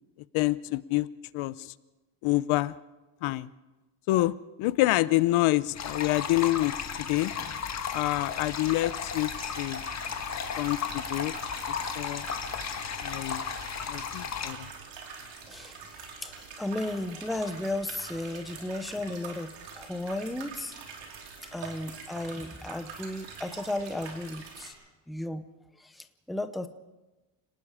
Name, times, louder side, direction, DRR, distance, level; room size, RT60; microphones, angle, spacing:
voice 1, 0.3-1.1 1.3-1.7 2.2-2.8 3.2-3.5 4.1-4.3 4.6-7.3 7.9-9.8 10.6-11.3 12.0-12.3 13.0-13.4 13.9-14.7, left 18 dB, 80° left, 16 dB, 0.8 m, -27 dB
sound 1, 5.7-14.5, left 6 dB, 35° left, 1.7 m, -34 dB
sound 2, 9.1-24.7, right 5 dB, 65° right, 4.6 m, -45 dB
voice 2, 15.5-20.8 21.5-24.7 25.1-25.4 25.8-26.7, left 1 dB, ahead, 9 dB, 0.6 m, -35 dB
29.5 x 19.0 x 4.9 m, 1.1 s
cardioid pair, 170°, 48 cm